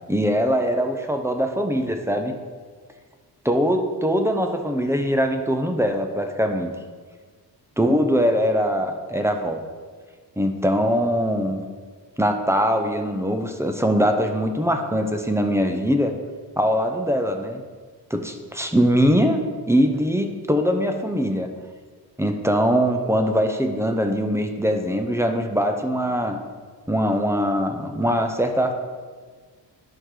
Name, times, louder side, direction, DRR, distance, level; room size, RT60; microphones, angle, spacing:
voice 1, 0.1-2.3 3.4-6.7 7.8-9.6 10.4-11.6 12.2-16.1 16.6-17.6 18.1-21.5 22.2-26.4 26.9-28.7, equal, 5° right, 5 dB, 0.8 m, -22 dB
11.0 x 5.0 x 3.9 m, 1.5 s
cardioid pair, 80°, 42 cm